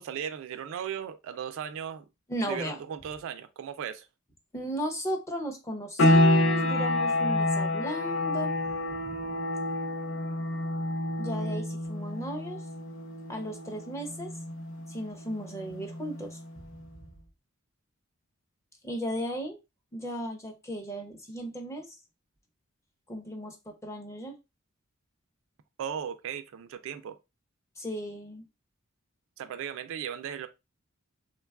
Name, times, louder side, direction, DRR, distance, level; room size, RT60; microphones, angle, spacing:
voice 1, 0.0-2.1 2.4-4.1 25.8-27.2 29.4-30.5, right 8 dB, 70° right, 0.3 m, -37 dB
voice 2, 2.3-2.8 4.5-9.0 11.2-12.6 13.3-14.3 14.9-16.4 18.8-19.6 19.9-22.0 23.1-24.4 27.8-28.4, equal, 15° left, 0.5 m, -35 dB
sound 1, 6.0-16.5, left 1 dB, 65° left, 0.5 m, -28 dB
3.2 x 2.2 x 2.2 m
head